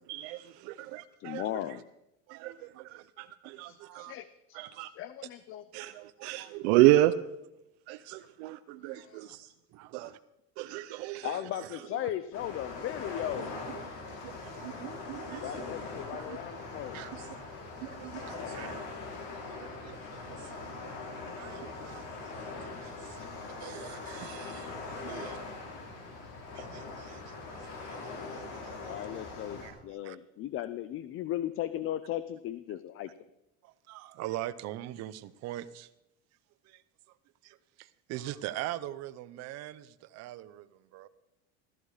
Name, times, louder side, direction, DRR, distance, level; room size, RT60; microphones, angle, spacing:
voice 1, 0.1-1.4 2.4-2.5 2.9-3.7 4.5-4.9 5.7-7.1 7.9-9.4 9.9-10.1 10.6-11.3 14.6-15.4 16.1-16.4 17.8-18.4 23.6-24.7 25.0-25.3, right 16 dB, 85° right, 7 dB, 0.7 m, -30 dB
voice 2, 1.2-1.8 3.6-5.6 8.9-9.4 11.2-13.6 15.4-17.0 18.3-18.6 28.9-33.1, left 12 dB, 40° left, 14 dB, 0.6 m, -37 dB
voice 3, 3.8-4.1 4.5-4.7 5.8-5.9 6.2-6.5 9.7-10.2 14.4-14.8 16.9-17.2 18.0-18.1 18.5-18.7 19.6-20.2 21.4-22.5 22.8-23.3 25.1-25.4 26.5-28.0 28.3-28.9 29.6-29.7 30.0-30.2 33.6-35.9 36.7-36.8 37.4-40.7 40.9-41.1, right 14 dB, 55° right, 14 dB, 0.8 m, -42 dB
sound 1, 12.3-29.7, left 3 dB, 70° left, 4.8 m, -42 dB
15.5 x 14.0 x 4.9 m, 0.89 s
cardioid pair, 140°, 32 cm